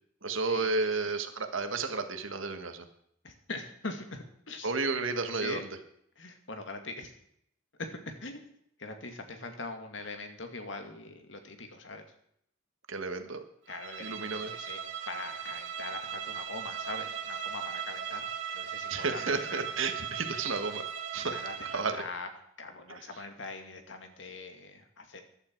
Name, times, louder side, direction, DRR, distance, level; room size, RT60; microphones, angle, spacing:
voice 1, 0.2-2.8 4.6-5.6 12.9-13.4 14.0-14.5 18.9-20.8 21.1-21.4 21.7-22.0 22.9-23.0, right 3 dB, 90° right, 7 dB, 1.6 m, -32 dB
voice 2, 3.2-4.7 5.3-5.7 6.2-7.1 7.8-8.5 8.8-12.0 13.7-14.8 15.1-19.7 21.2-22.3 22.6-25.2, left 3 dB, 70° left, 5 dB, 2.2 m, -42 dB
Bowed string instrument, 13.7-22.1, right 8 dB, 70° right, 1.9 m, -38 dB
14.5 x 11.5 x 4.6 m, 0.70 s
head